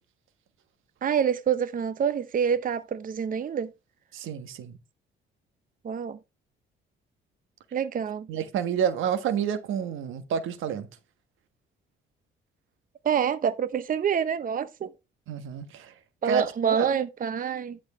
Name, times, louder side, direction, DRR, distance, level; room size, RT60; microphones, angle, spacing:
voice 1, 1.0-3.7 5.8-6.2 7.7-8.3 13.0-14.9 16.2-17.8, right 7 dB, 45° right, 0.7 m, -27 dB
voice 2, 4.1-4.8 8.3-10.9 15.3-15.9 16.2-16.9, right 7 dB, 85° right, 1.5 m, -29 dB
11.0 x 6.2 x 3.2 m
cardioid pair, 90°, 20 cm